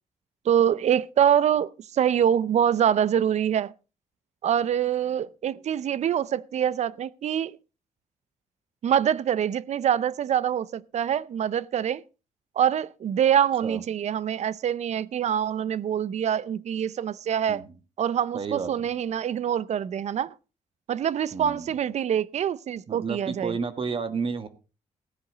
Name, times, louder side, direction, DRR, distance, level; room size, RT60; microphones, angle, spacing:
voice 1, 0.4-3.7 4.4-7.6 8.8-12.0 12.6-17.6 18.0-20.3 20.9-23.6, right 9 dB, 60° right, 0.6 m, -25 dB
voice 2, 18.3-18.9 21.3-21.7 22.9-24.5, right 5 dB, 40° right, 1.5 m, -31 dB
15.5 x 10.0 x 3.9 m
cardioid pair, 105°, 13 cm